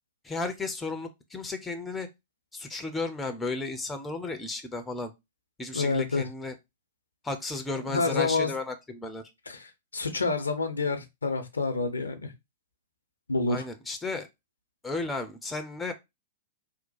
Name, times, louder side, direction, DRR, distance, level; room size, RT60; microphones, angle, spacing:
voice 1, 0.2-2.1 2.5-5.1 5.6-6.5 7.2-9.2 13.5-14.3 14.8-15.9, left 3 dB, 10° left, 0.6 m, -34 dB
voice 2, 5.7-6.3 7.8-8.5 9.5-12.3 13.3-13.6, left 3 dB, 80° left, 0.6 m, -28 dB
2.9 x 2.1 x 4.1 m
figure-of-eight pair, 105°, 0 cm